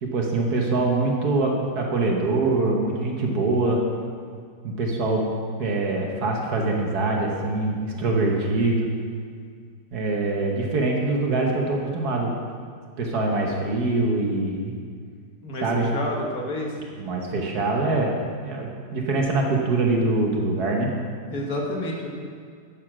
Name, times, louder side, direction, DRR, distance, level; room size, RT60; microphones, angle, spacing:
voice 1, 0.0-3.8 4.6-5.3 5.6-8.9 9.9-12.3 13.0-14.8 15.6-15.9 17.0-18.1 18.4-20.9, right 2 dB, 60° right, 0 dB, 1.6 m, -24 dB
voice 2, 15.9-16.8 21.3-22.1, left 1 dB, 55° left, -1 dB, 1.7 m, -29 dB
8.8 x 6.5 x 6.0 m, 2.1 s
omnidirectional pair, 2.0 m